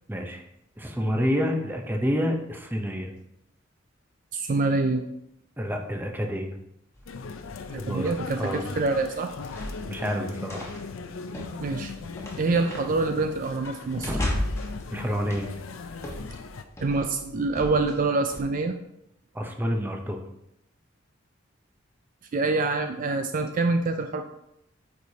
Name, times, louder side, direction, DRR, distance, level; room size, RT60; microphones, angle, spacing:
voice 1, 0.1-0.4 0.8-3.1 5.6-6.5 7.7-8.7 9.8-10.8 13.9-14.2 14.9-15.5 19.3-20.2, equal, 10° right, 3 dB, 0.7 m, -28 dB
voice 2, 4.3-5.0 7.7-9.3 11.6-11.9 12.4-14.1 16.8-18.7 22.3-24.2, right 3 dB, 45° right, 6 dB, 0.4 m, -26 dB
sound 1, 6.9-18.4, left 1 dB, 15° left, 1.3 m, -37 dB
sound 2, 7.1-16.6, left 4 dB, 90° left, 0.5 m, -39 dB
9.1 x 4.7 x 2.8 m, 0.80 s
head